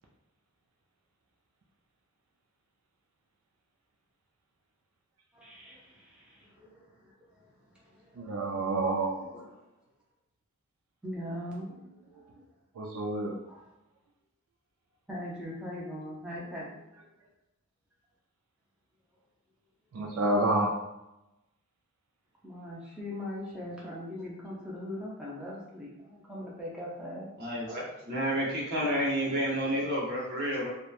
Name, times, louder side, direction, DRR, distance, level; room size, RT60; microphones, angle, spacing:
voice 1, 5.3-8.7 9.3-9.7 11.0-11.7 13.5-13.7 15.1-16.7 22.4-27.3, left 1 dB, 5° right, -6 dB, 0.5 m, -41 dB
voice 2, 8.2-9.3 12.8-13.4 19.9-20.7, right 2 dB, 70° right, -1 dB, 0.4 m, -28 dB
voice 3, 27.4-30.7, equal, 50° right, -4 dB, 0.9 m, -30 dB
2.8 x 2.1 x 2.3 m, 0.92 s
head